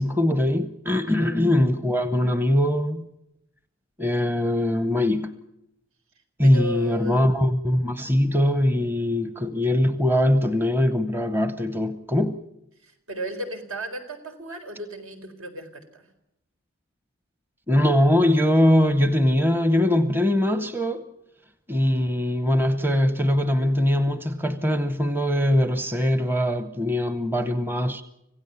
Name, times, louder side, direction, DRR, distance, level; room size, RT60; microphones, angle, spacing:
voice 1, 0.0-3.1 4.0-5.3 6.4-12.4 17.7-21.1 21.7-28.0, left 1 dB, 10° right, 0.8 m, -22 dB
voice 2, 1.1-1.5 6.4-7.2 12.8-16.0, right 1 dB, 75° right, 4.3 m, -35 dB
26.0 x 16.5 x 7.0 m
head